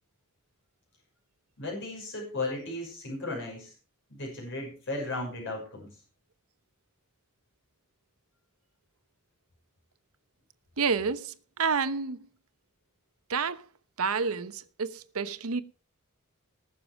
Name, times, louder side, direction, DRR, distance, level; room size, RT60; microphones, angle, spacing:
voice 1, 1.6-3.7 4.1-5.9, left 2 dB, 60° left, 5.9 m, -35 dB
voice 2, 10.8-12.2 13.3-13.6 14.0-15.6, right 5 dB, 75° right, 0.9 m, -29 dB
19.5 x 6.8 x 4.9 m
head